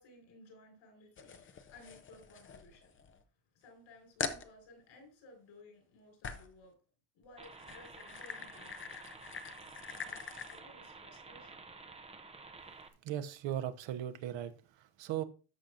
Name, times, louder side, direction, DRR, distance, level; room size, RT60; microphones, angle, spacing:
voice 1, 0.0-2.9 3.2-3.3 3.5-6.7 7.1-9.1 9.9-11.6, left 2 dB, 70° left, 5.3 m, -58 dB
sound 1, 1.2-3.2 3.6-3.7 4.2-4.5 6.2-6.6 7.4-10.6, left 6 dB, 25° left, 0.7 m, -44 dB
sound 2, 7.4-12.9, right 4 dB, 15° right, 0.6 m, -52 dB
voice 2, 13.0-15.2, right 11 dB, 65° right, 1.1 m, -38 dB
14.0 x 5.9 x 2.6 m
cardioid pair, 155°, 48 cm